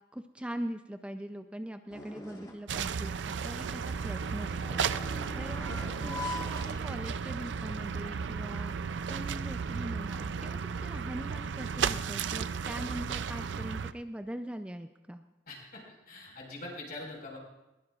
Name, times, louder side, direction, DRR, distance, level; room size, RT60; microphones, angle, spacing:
voice 1, 0.1-5.0 5.3-5.7 6.0-8.7 9.1-15.2, right 1 dB, 5° right, 7 dB, 0.4 m, -41 dB
sound 1, 1.9-2.7 3.8-7.4 7.8-7.9 9.0-9.1, left 2 dB, 20° left, 1.6 m, -43 dB
sound 2, 2.7-13.9, right 6 dB, 90° right, 0.5 m, -34 dB
voice 2, 15.5-17.4, left 2 dB, 55° left, -2 dB, 4.9 m, -43 dB
21.0 x 19.0 x 2.4 m, 1.0 s
head